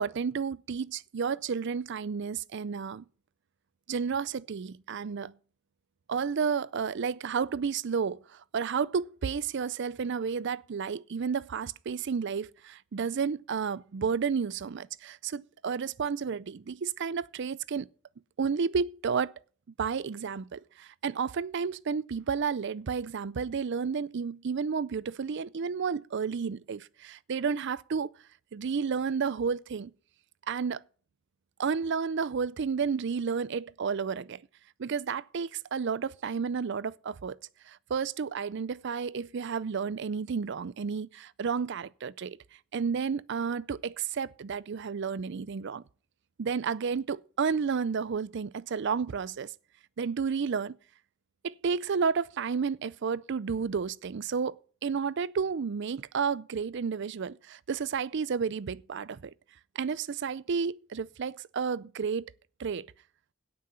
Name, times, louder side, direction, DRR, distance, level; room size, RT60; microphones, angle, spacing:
voice 1, 0.0-3.0 3.9-5.3 6.1-17.9 18.4-19.3 19.8-28.1 28.5-29.9 30.5-30.8 31.6-34.4 34.8-37.4 37.7-42.4 42.7-45.8 46.4-49.5 50.0-50.8 51.4-59.3 59.8-62.3 62.6-62.9, right 6 dB, 55° right, 0.4 m, -31 dB
17.0 x 6.2 x 5.6 m
head